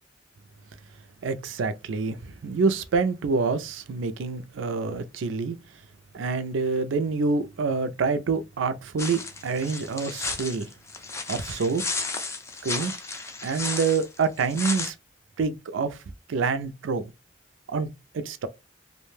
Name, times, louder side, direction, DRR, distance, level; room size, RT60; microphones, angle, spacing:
voice 1, 1.2-5.6 6.1-10.7 11.3-11.8 12.6-12.9 13.4-14.9 15.4-16.0 16.3-17.1 17.7-18.5, right 4 dB, 85° right, 0.4 m, -27 dB
sound 1, 9.0-14.9, left 3 dB, 15° left, 0.3 m, -33 dB
2.4 x 2.1 x 3.2 m
head